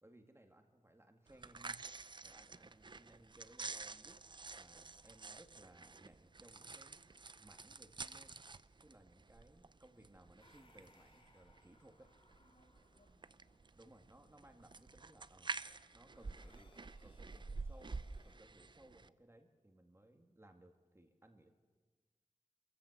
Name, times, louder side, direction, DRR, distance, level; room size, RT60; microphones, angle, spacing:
voice 1, 0.0-1.8 2.2-4.2 4.6-7.0 7.4-8.4 8.8-12.1 13.7-15.5 15.9-18.0 18.2-21.5, right 1 dB, 20° right, 4 dB, 2.2 m, -63 dB
sound 1, 1.3-19.1, right 4 dB, 40° right, 0.6 m, -50 dB
sound 2, 10.4-18.4, left 2 dB, 45° left, 2.5 m, -72 dB
voice 2, 12.4-13.7 14.2-14.6, left 1 dB, 80° left, -1 dB, 7.6 m, -74 dB
28.0 x 14.5 x 8.1 m, 1.3 s
wide cardioid pair, 95°, 12 cm